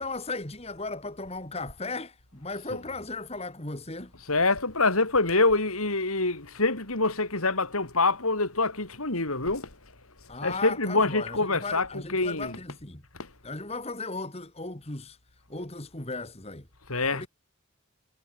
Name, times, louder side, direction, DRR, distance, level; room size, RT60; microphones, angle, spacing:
voice 1, 0.0-4.1 10.3-13.0 13.4-15.2 15.5-16.7 17.1-17.3, left 3 dB, 30° left, 2.4 m, -36 dB
voice 2, 4.1-9.8 10.4-12.6 13.2-13.3 16.9-17.3, left 3 dB, 80° left, 5.0 m, -26 dB
head